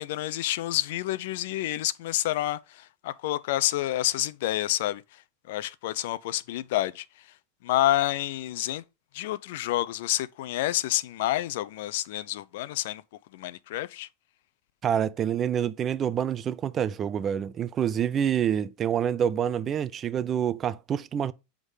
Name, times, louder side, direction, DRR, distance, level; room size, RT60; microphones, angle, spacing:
voice 1, 0.0-5.0 5.5-7.0 7.6-8.8 9.1-13.0 13.3-14.1, left 14 dB, 70° left, 0.5 m, -28 dB
voice 2, 14.8-21.3, right 9 dB, 30° right, 0.5 m, -27 dB
8.0 x 3.7 x 5.6 m
supercardioid pair, 125°, 0 cm